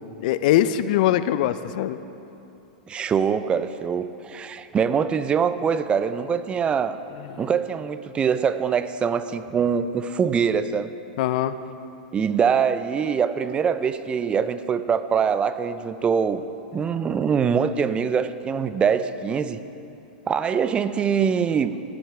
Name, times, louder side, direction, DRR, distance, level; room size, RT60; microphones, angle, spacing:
voice 1, 0.0-2.0 7.2-7.5 11.2-11.6, left 12 dB, 60° left, 13 dB, 0.4 m, -22 dB
voice 2, 2.9-7.0 7.4-10.9 12.1-16.4 16.7-19.6 20.3-21.7, right 6 dB, 20° right, 13 dB, 0.4 m, -23 dB
13.0 x 8.5 x 3.4 m, 2.9 s
hypercardioid pair, 115°, 5 cm